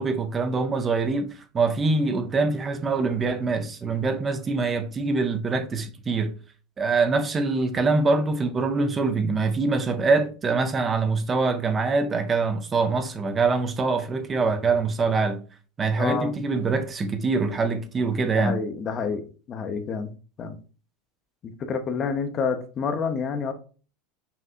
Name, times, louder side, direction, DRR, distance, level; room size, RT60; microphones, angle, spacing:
voice 1, 0.0-6.3 6.8-15.4 15.8-18.6, right 4 dB, 25° right, 0.5 m, -24 dB
voice 2, 15.9-16.3 18.2-19.2 19.5-20.1 20.4-20.6 21.4-23.5, left 5 dB, 35° left, 0.7 m, -28 dB
5.6 x 2.7 x 2.4 m
supercardioid pair, 115°, 0 cm